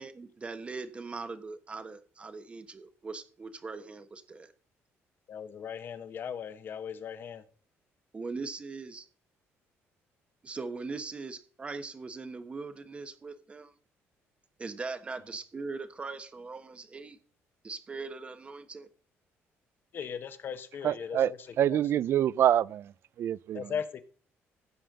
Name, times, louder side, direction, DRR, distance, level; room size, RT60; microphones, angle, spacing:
voice 1, 0.0-4.5 8.1-9.1 10.4-13.7 14.6-17.2 17.6-18.9, right 4 dB, 25° right, 1.4 m, -40 dB
voice 2, 5.3-7.4 19.9-21.8 23.5-24.0, left 7 dB, 45° left, 1.4 m, -38 dB
voice 3, 20.8-21.3 21.6-22.9 23.2-23.6, right 10 dB, 55° right, 0.5 m, -26 dB
15.5 x 5.6 x 6.8 m
cardioid pair, 135°, 5 cm